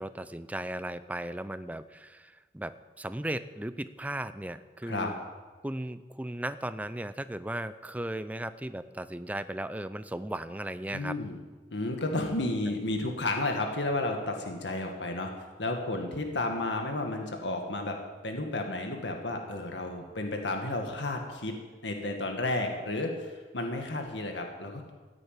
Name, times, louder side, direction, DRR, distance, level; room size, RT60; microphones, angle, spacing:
voice 1, 0.0-5.2 5.6-11.2, right 1 dB, 10° right, 12 dB, 0.5 m, -36 dB
voice 2, 10.9-11.4 11.7-15.3 15.6-18.0 18.2-21.6 21.8-24.9, left 2 dB, 85° left, 3 dB, 1.9 m, -32 dB
15.0 x 10.0 x 9.1 m, 1.4 s
head